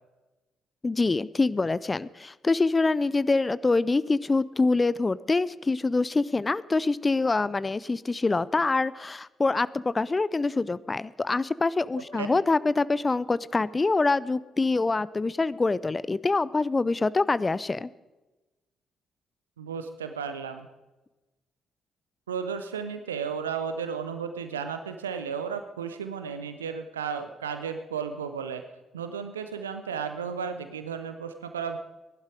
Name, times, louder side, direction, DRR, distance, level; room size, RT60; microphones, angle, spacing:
voice 1, 0.8-17.9, left 3 dB, 25° left, 19 dB, 0.5 m, -25 dB
voice 2, 19.6-20.7 22.3-28.6 28.9-31.8, right 6 dB, 85° right, 8 dB, 0.6 m, -34 dB
16.5 x 11.5 x 4.9 m, 1.1 s
figure-of-eight pair, 40°, 0 cm